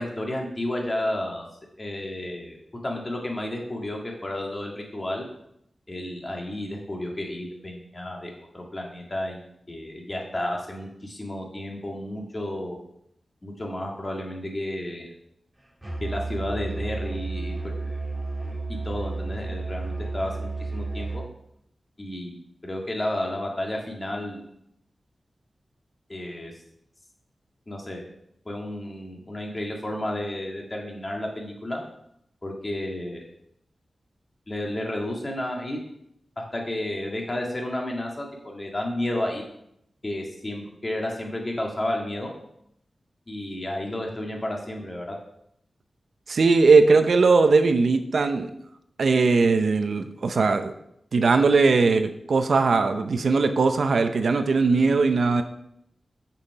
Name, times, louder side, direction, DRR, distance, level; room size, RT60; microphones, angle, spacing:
voice 1, 0.0-1.4 1.8-2.6 2.8-5.2 5.9-12.8 13.4-15.1 16.0-17.9 18.7-21.2 22.0-22.3 22.6-24.4 26.1-26.5 27.7-28.0 28.5-31.8 32.4-33.2 34.5-35.8 36.4-39.4 40.0-42.3 43.3-45.2, left 1 dB, 35° left, 0 dB, 1.9 m, -32 dB
Musical instrument, 15.8-21.3, right 3 dB, 15° right, 2.0 m, -32 dB
voice 2, 46.3-48.5 49.0-50.7 51.1-55.4, right 4 dB, 75° right, 8 dB, 0.6 m, -19 dB
6.7 x 5.7 x 4.7 m, 0.75 s
wide cardioid pair, 85°, 0 cm